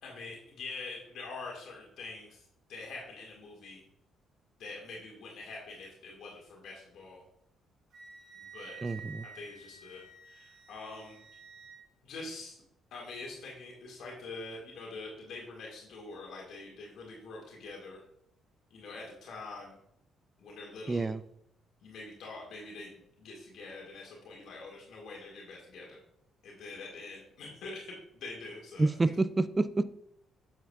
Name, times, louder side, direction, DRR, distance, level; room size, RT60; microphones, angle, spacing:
voice 1, 0.0-2.4 2.7-3.8 4.6-7.2 8.4-8.8 9.3-11.2 12.0-12.6 12.9-18.0 18.7-19.7 20.4-21.1 21.8-22.9 23.2-26.0 26.4-29.2, left 3 dB, 75° left, -2 dB, 1.8 m, -45 dB
Wind instrument woodwind instrument, 7.9-11.8, right 5 dB, 65° right, 2.8 m, -51 dB
voice 2, 8.8-9.2 20.9-21.2 28.8-29.8, right 3 dB, 20° right, 14 dB, 0.3 m, -28 dB
7.9 x 7.1 x 2.3 m, 0.74 s
cardioid pair, 90°, 0 cm